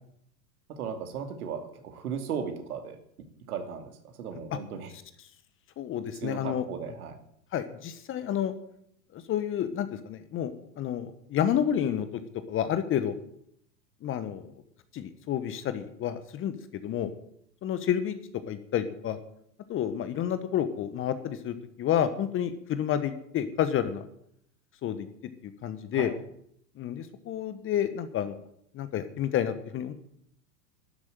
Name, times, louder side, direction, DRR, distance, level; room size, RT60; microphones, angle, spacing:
voice 1, 0.7-3.0 3.5-4.9 6.2-7.2 25.9-26.1, right 7 dB, 60° right, 6 dB, 2.7 m, -36 dB
voice 2, 5.8-6.7 7.5-8.5 9.1-12.1 12.5-13.2 14.0-14.5 14.9-17.1 17.6-18.2 18.5-19.2 19.7-24.0 24.8-25.1 25.4-26.1 26.8-28.4 28.7-29.9, left 10 dB, 25° left, 11 dB, 1.1 m, -30 dB
12.5 x 8.3 x 9.1 m, 0.71 s
hypercardioid pair, 100°, 50 cm